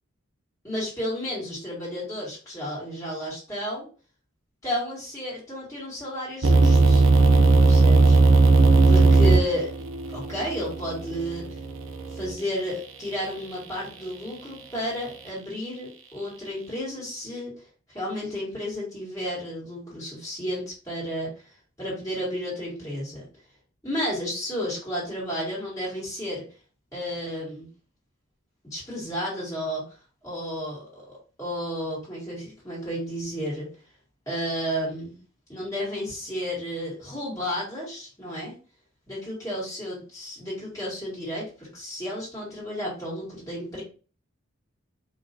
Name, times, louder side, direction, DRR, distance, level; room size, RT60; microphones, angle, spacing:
voice 1, 0.6-3.9 4.6-7.0 7.7-8.2 8.9-9.7 10.1-11.5 12.1-21.3 21.8-23.2 23.8-26.4 26.9-27.7 28.6-29.8 30.2-33.7 34.3-35.2 35.5-38.5 39.1-43.8, equal, 15° left, -7 dB, 2.1 m, -32 dB
sound 1, 6.4-12.3, right 3 dB, 80° right, 0.6 m, -18 dB
4.7 x 3.0 x 2.7 m, 0.36 s
head